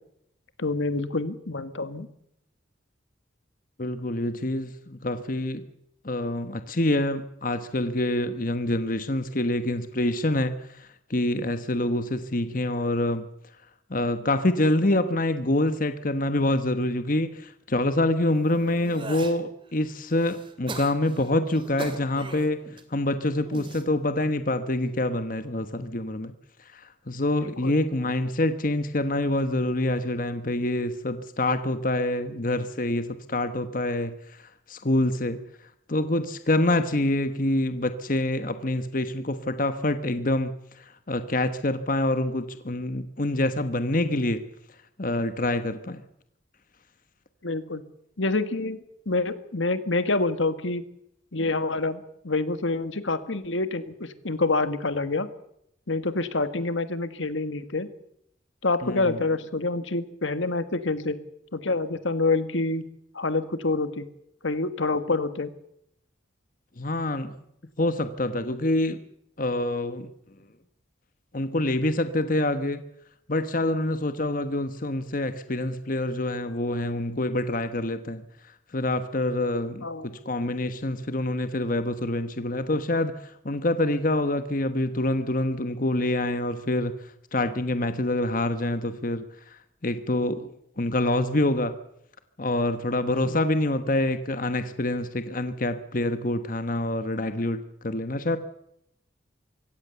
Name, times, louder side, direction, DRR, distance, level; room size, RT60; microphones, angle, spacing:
voice 1, 0.6-2.1 27.4-27.8 47.4-47.8 48.2-50.8 51.3-55.3 55.9-57.9 58.6-61.2 61.5-62.9 63.1-64.1 64.4-65.5 79.8-80.1 93.2-93.4, left 3 dB, 80° left, 11 dB, 1.7 m, -27 dB
voice 2, 3.8-5.6 6.0-13.2 13.9-22.6 22.9-26.3 26.7-35.4 35.9-40.5 40.8-44.4 45.0-46.0 58.8-59.2 66.8-67.3 67.8-69.0 69.4-70.1 71.3-72.8 73.3-78.2 78.7-86.9 87.3-89.3 89.8-90.5 90.8-91.7 92.4-98.4, left 1 dB, 45° left, 10 dB, 1.2 m, -26 dB
sound 1, 18.3-19.4 19.9-22.8 23.4-23.8 24.6-25.0, right 2 dB, 25° right, 2.3 m, -40 dB
24.0 x 16.5 x 7.0 m, 0.75 s
head